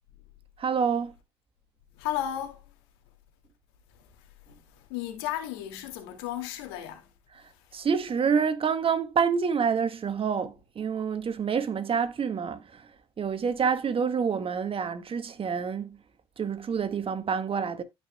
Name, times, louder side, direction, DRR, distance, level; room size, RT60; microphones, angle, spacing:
voice 1, 0.6-1.1 7.3-7.4 7.7-12.9 13.2-16.0 16.4-17.8, right 6 dB, 45° right, 1.7 m, -27 dB
voice 2, 1.9-2.6 4.5-7.1, left 12 dB, 90° left, 2.2 m, -34 dB
15.5 x 5.6 x 2.2 m
hypercardioid pair, 60°, 13 cm